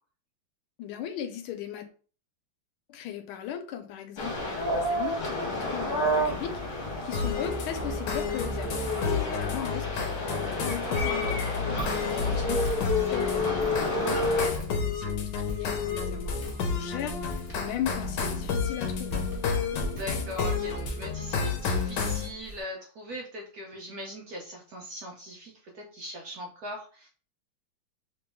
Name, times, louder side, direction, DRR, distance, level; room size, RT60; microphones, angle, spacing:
voice 1, 0.8-1.9 2.9-19.2, left 9 dB, 90° left, 1.5 m, -38 dB
sound 1, 4.2-14.5, left 1 dB, 45° left, 1.2 m, -30 dB
voice 2, 7.0-7.3 11.7-12.0 19.7-27.1, equal, 65° right, 0.9 m, -40 dB
sound 2, 7.1-22.3, left 5 dB, 70° left, 1.2 m, -31 dB
Walk footsteps, 11.5-22.6, equal, 20° left, 1.4 m, -42 dB
3.2 x 3.0 x 3.4 m
omnidirectional pair, 2.3 m